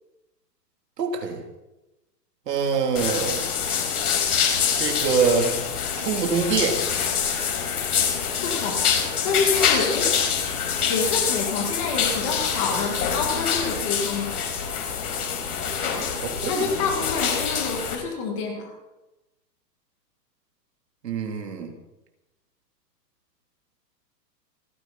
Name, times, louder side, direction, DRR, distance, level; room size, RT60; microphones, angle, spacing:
voice 1, 1.0-1.4 2.5-3.4 4.8-5.5 6.0-6.8 15.8-16.9 21.0-21.7, right 5 dB, 70° right, 3 dB, 3.3 m, -25 dB
sound 1, 3.0-18.0, left 7 dB, 60° left, 4.8 m, -25 dB
voice 2, 8.4-8.9 9.2-10.1 10.9-14.4 16.5-18.7, left 4 dB, 20° left, 3 dB, 1.6 m, -27 dB
28.0 x 10.5 x 4.2 m, 1.0 s
hypercardioid pair, 180°, 50 cm